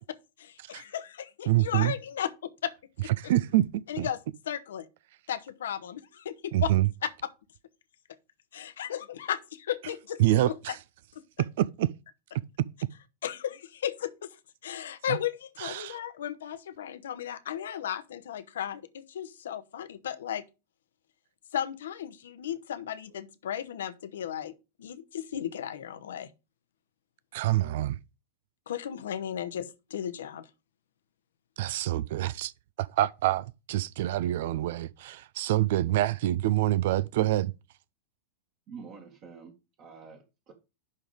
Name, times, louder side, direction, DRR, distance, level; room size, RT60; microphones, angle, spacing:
voice 1, 0.0-2.7 3.0-3.1 3.9-4.2 4.5-4.9 5.3-6.7 7.0-7.1 8.5-10.2 10.5-10.6 13.2-14.4 14.6-20.4 21.5-24.5 24.8-26.3 28.7-30.5, left 10 dB, 60° left, 0.9 m, -35 dB
voice 2, 1.5-1.9 3.2-4.1 6.5-6.9 10.2-10.8 11.6-11.9 15.6-16.0 27.3-28.0 31.6-32.5 32.8-37.5, right 15 dB, 55° right, 0.4 m, -26 dB
voice 3, 38.7-40.5, right 5 dB, 40° right, 1.7 m, -47 dB
11.0 x 3.8 x 5.0 m
figure-of-eight pair, 90°, 0 cm